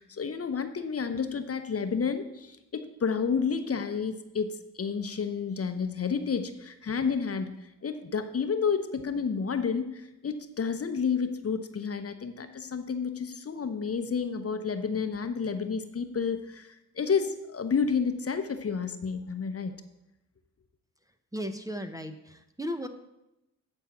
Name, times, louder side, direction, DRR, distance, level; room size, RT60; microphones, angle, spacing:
voice 1, 0.0-19.8, left 6 dB, 40° left, 8 dB, 0.9 m, -30 dB
voice 2, 21.3-22.9, equal, 10° right, 7 dB, 0.8 m, -35 dB
8.7 x 4.5 x 7.2 m, 0.90 s
supercardioid pair, 50°, 37 cm